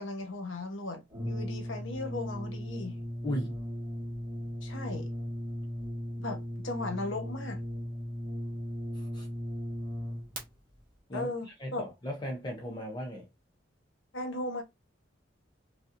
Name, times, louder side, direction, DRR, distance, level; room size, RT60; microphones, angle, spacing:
voice 1, 0.0-3.0 4.6-5.1 6.2-7.6 11.1-11.8 14.1-14.6, left 2 dB, 75° left, 1.1 m, -37 dB
Brass instrument, 1.1-10.4, equal, 25° right, 1.6 m, -37 dB
voice 2, 3.2-3.6 8.9-9.3 11.1-11.3 11.6-13.3, equal, 25° left, 0.7 m, -36 dB
5.2 x 2.4 x 2.6 m
head